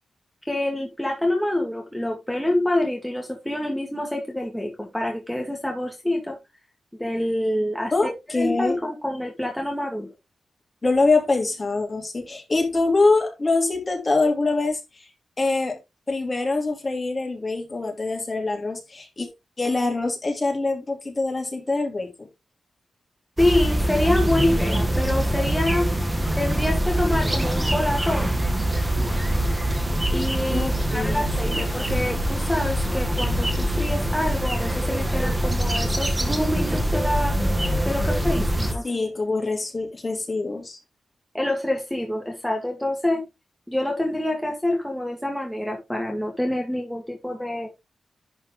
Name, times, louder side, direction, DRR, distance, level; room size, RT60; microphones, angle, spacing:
voice 1, 0.5-6.4 7.0-10.1 23.4-25.9 26.4-28.3 30.1-37.4 37.9-38.9 41.3-43.2 43.7-47.7, left 1 dB, 5° left, 1.9 m, -26 dB
voice 2, 7.9-8.8 10.8-15.1 15.4-15.8 16.1-19.3 19.6-22.3 30.5-31.6 38.8-40.8, left 3 dB, 30° left, 2.8 m, -24 dB
sound 1, 23.4-38.7, right 1 dB, 10° right, 1.4 m, -24 dB
11.0 x 4.4 x 3.6 m
wide cardioid pair, 110°, 0 cm